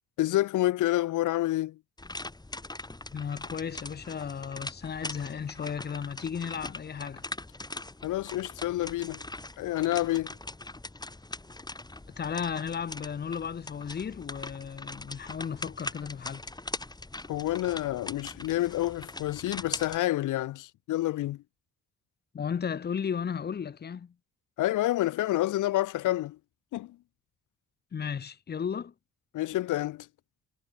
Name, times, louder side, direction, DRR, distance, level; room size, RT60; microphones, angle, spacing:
voice 1, 0.2-1.8 8.0-9.2 9.6-10.3 17.3-21.4 24.6-26.4 26.7-27.0 29.3-30.1, left 15 dB, 85° left, 0.6 m, -28 dB
sound 1, 2.0-20.0, left 2 dB, 15° left, 4.0 m, -41 dB
voice 2, 3.1-7.2 12.2-16.4 22.3-24.1 27.9-28.9, left 7 dB, 35° left, 0.7 m, -34 dB
cardioid pair, 110°, 30 cm